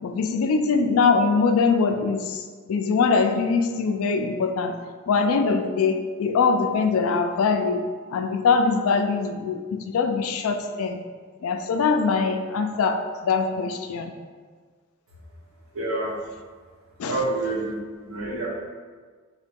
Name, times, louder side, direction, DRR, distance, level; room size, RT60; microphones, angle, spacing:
voice 1, 0.0-2.4 2.7-4.8 5.1-7.8 8.1-11.0 11.4-14.1 17.0-17.2, left 4 dB, 70° left, 6 dB, 0.3 m, -22 dB
voice 2, 15.7-16.1 17.1-17.8 18.1-18.5, right 2 dB, 65° right, -4 dB, 0.9 m, -27 dB
3.7 x 2.2 x 3.5 m, 1.5 s
head